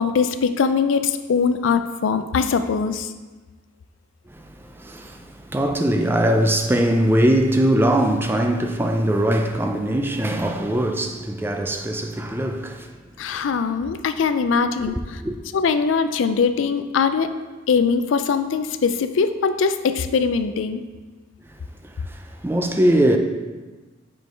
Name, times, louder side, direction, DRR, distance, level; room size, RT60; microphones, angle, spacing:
voice 1, 0.0-3.1 13.2-15.2 15.5-17.3 17.7-20.8, left 5 dB, 75° left, 0.4 m, -21 dB
voice 2, 4.8-12.9 14.9-15.4 22.1-23.2, right 1 dB, 10° right, 0.4 m, -21 dB
5.2 x 4.6 x 4.5 m
head